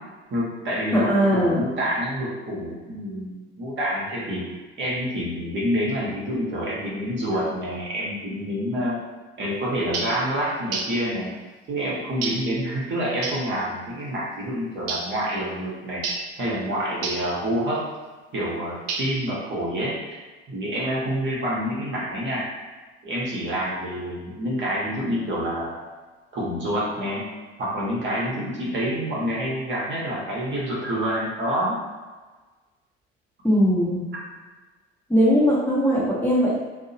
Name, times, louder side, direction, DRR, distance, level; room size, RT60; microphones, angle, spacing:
voice 1, 0.3-4.4 4.8-9.0 9.4-11.3 11.7-16.0 16.4-17.9 18.3-20.0 20.5-22.4 23.0-25.9 26.3-27.2 27.6-31.8, equal, 35° right, -5 dB, 0.9 m, -27 dB
voice 2, 0.9-1.6 33.4-34.0 35.1-36.6, equal, 5° left, -8 dB, 0.8 m, -20 dB
sound 1, 9.9-10.2 10.7-11.0 12.2-12.5 13.2-13.5 14.9-15.2 16.0-16.3 17.0-17.3 18.9-19.3, right 4 dB, 60° right, 0.5 m, -30 dB
2.7 x 2.0 x 2.7 m, 1.3 s
figure-of-eight pair, 60°, 33 cm